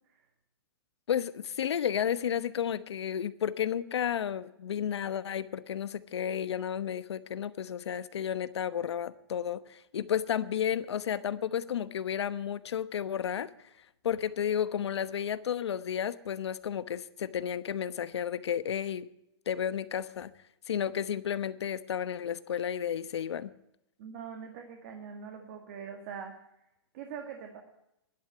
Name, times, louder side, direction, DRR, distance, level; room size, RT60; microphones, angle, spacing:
voice 1, 1.1-13.5 14.0-19.1 19.5-20.3 20.7-23.5, left 9 dB, 80° left, 14 dB, 1.1 m, -32 dB
voice 2, 24.0-26.3 26.9-27.6, right 7 dB, 40° right, 4 dB, 2.0 m, -43 dB
12.0 x 11.0 x 7.9 m, 0.83 s
hypercardioid pair, 165°, 14 cm